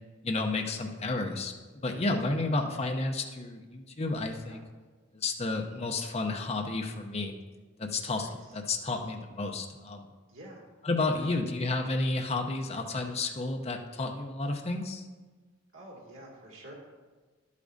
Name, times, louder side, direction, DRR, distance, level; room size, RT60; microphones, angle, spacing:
voice 1, 0.2-4.6 5.1-7.3 7.8-10.0 10.8-15.0, left 2 dB, 30° left, 3 dB, 0.7 m, -31 dB
voice 2, 4.2-4.6 8.2-8.6 10.3-10.7 11.1-11.5 15.7-16.7, right 1 dB, 85° right, -2 dB, 2.2 m, -49 dB
11.0 x 8.3 x 2.7 m, 1.3 s
head